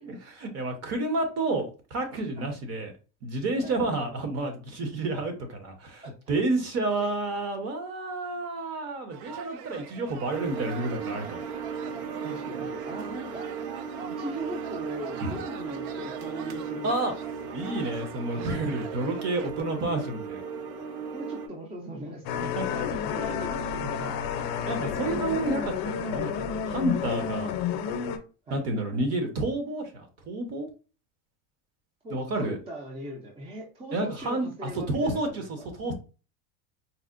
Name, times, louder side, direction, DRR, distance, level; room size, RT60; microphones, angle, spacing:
voice 1, 0.0-2.9 3.2-11.4 15.2-15.4 16.8-17.1 17.5-20.4 22.4-22.9 24.7-25.7 26.0-26.3 26.6-27.6 28.5-30.7 32.1-32.6 33.9-35.9, right 2 dB, 40° right, 6 dB, 0.9 m, -30 dB
voice 2, 3.5-4.2 6.0-6.4 7.0-7.1 12.2-13.5 14.1-17.2 21.1-24.3 28.5-28.6 32.0-35.7, right 1 dB, 15° right, -1 dB, 0.5 m, -40 dB
sound 1, 9.1-19.5, right 8 dB, 65° right, 0.5 m, -44 dB
sound 2, 10.3-21.5, right 5 dB, 85° right, 0.9 m, -36 dB
sound 3, 22.3-28.2, left 7 dB, 55° left, 0.6 m, -30 dB
4.1 x 2.1 x 2.4 m, 0.34 s
supercardioid pair, 135°, 42 cm